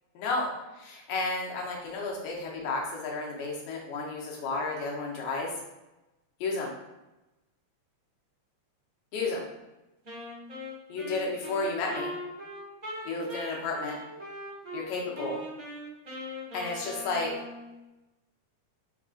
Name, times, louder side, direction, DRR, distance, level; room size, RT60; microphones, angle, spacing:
voice 1, 0.2-5.5 6.4-6.7 9.1-9.5 10.9-12.1 13.1-14.0 14.7-15.4 16.5-17.3, left 3 dB, 80° left, -2 dB, 2.2 m, -32 dB
Wind instrument woodwind instrument, 10.0-14.8 15.1-17.8, equal, 25° right, 0.8 m, -41 dB
4.7 x 3.7 x 2.4 m, 1.0 s
omnidirectional pair, 3.3 m